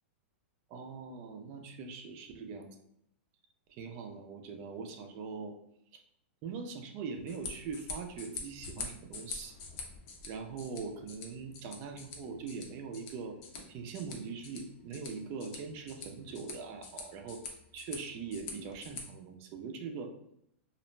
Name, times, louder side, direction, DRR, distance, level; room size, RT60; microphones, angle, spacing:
voice 1, 0.7-2.7 3.7-5.5 5.9-6.0 6.4-9.5 10.2-13.4 13.7-17.4 17.7-20.1, right 5 dB, 40° right, 5 dB, 0.4 m, -42 dB
sound 1, 7.1-19.0, left 4 dB, 45° left, 0.6 m, -46 dB
sound 2, 12.2-12.4 13.5-13.8 14.9-15.0 16.3-16.5, left 2 dB, 90° left, 0.9 m, -54 dB
2.4 x 2.1 x 3.0 m, 0.73 s
hypercardioid pair, 140°, 7 cm